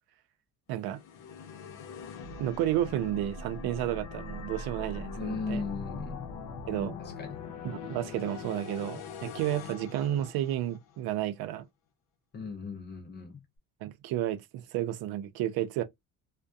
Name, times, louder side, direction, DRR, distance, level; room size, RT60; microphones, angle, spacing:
voice 1, 0.7-1.0 2.4-5.6 6.7-6.9 7.6-11.7 13.8-15.8, right 12 dB, 80° right, 0.5 m, -32 dB
sound 1, 0.8-11.0, left 4 dB, 90° left, 0.7 m, -42 dB
voice 2, 5.2-6.3 7.0-7.5 12.3-13.4, left 4 dB, 30° left, 0.4 m, -37 dB
2.3 x 2.1 x 2.5 m
cardioid pair, 170°, 36 cm